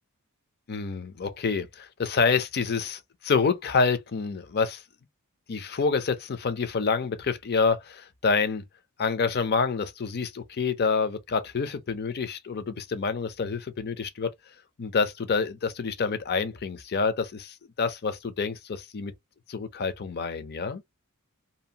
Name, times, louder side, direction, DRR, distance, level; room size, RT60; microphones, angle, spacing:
voice 1, 0.7-4.8 5.5-8.6 9.0-14.3 14.8-19.1 19.5-20.8, left 5 dB, 45° left, 0.5 m, -27 dB
2.8 x 2.4 x 2.7 m
head